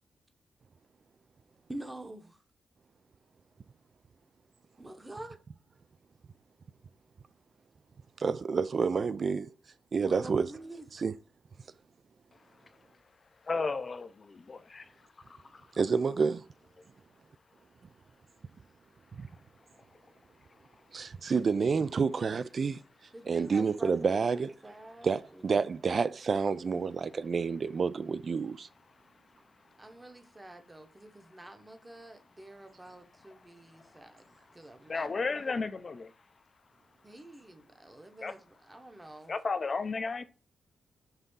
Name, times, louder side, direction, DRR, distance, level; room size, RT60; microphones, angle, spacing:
voice 1, 1.7-2.4 4.8-5.4 10.0-10.9 23.1-25.5 29.8-35.1 37.0-39.3, right 1 dB, 15° right, 0.9 m, -47 dB
voice 2, 8.2-9.5 9.9-10.5 10.9-11.1 15.7-16.4 19.1-19.3 20.9-22.8 23.3-24.5 25.0-28.7, right 5 dB, 40° right, 0.3 m, -29 dB
voice 3, 13.4-15.7 20.5-20.6 26.7-26.8 29.0-29.1 33.4-36.1 38.2-38.3 39.3-40.2, left 4 dB, 30° left, 0.6 m, -36 dB
5.6 x 3.6 x 5.4 m
wide cardioid pair, 160°, 0 cm